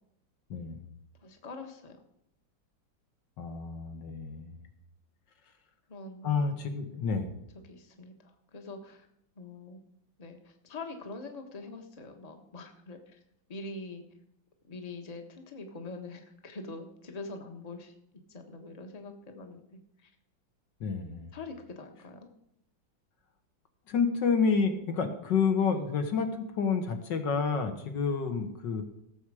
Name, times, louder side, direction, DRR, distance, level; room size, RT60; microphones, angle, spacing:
voice 1, 0.5-0.8 3.4-4.6 6.2-7.3 20.8-21.3 23.9-28.8, left 5 dB, 65° left, 6 dB, 1.9 m, -29 dB
voice 2, 1.2-2.0 5.9-6.4 7.7-9.1 9.4-9.8 10.2-13.2 13.5-14.0 14.6-17.9 18.3-20.1 21.3-22.3, left 3 dB, 25° left, 5 dB, 1.2 m, -44 dB
17.0 x 7.3 x 4.9 m, 0.78 s
omnidirectional pair, 2.2 m